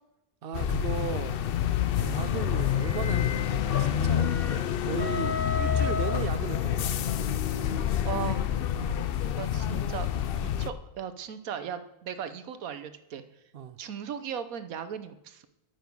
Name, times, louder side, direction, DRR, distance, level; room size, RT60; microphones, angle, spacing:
voice 1, 0.4-1.4 2.0-4.3 4.8-7.1 8.7-9.2 13.5-13.8, right 8 dB, 55° right, 13 dB, 0.7 m, -36 dB
sound 1, 0.5-10.7, left 9 dB, 65° left, 0.6 m, -28 dB
sound 2, 2.1-7.0, left 5 dB, 85° left, 1.6 m, -35 dB
voice 2, 8.0-8.5 9.4-13.2 13.8-15.5, right 8 dB, 80° right, 11 dB, 1.3 m, -37 dB
11.0 x 9.3 x 5.3 m, 0.88 s
omnidirectional pair, 1.5 m